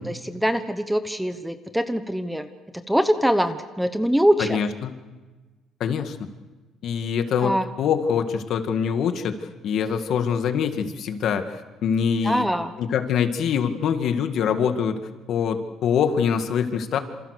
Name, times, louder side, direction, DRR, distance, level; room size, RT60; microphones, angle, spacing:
voice 1, 0.1-2.5 2.9-4.6 7.4-7.7 12.2-12.7, equal, ahead, 9 dB, 1.0 m, -23 dB
voice 2, 4.4-4.9 5.8-6.2 6.8-12.5 12.8-15.0 15.3-17.0, left 7 dB, 55° left, 7 dB, 2.0 m, -24 dB
28.0 x 27.5 x 6.7 m, 1.3 s
cardioid pair, 160°, 0 cm